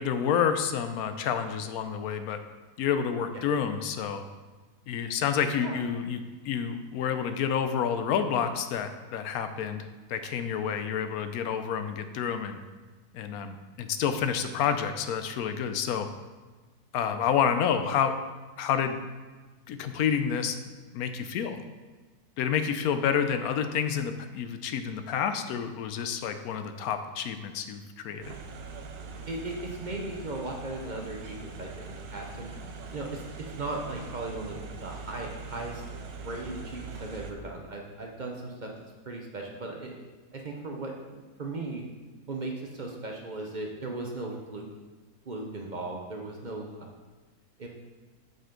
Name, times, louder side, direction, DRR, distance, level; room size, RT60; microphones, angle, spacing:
voice 1, 0.0-2.4 2.8-4.2 4.9-12.6 13.1-16.1 16.9-18.2 18.6-19.0 19.7-20.6 20.9-21.6 22.4-28.3, left 7 dB, 75° left, 9 dB, 1.0 m, -29 dB
sound 1, 28.2-37.3, right 4 dB, 90° right, 1.3 m, -42 dB
voice 2, 29.3-32.5 32.9-33.2 33.5-35.8 36.2-38.7 39.1-41.8 42.3-44.7 45.3-46.9 47.6-47.7, right 2 dB, 45° right, 0 dB, 0.6 m, -37 dB
7.7 x 5.4 x 3.8 m, 1.3 s
omnidirectional pair, 1.6 m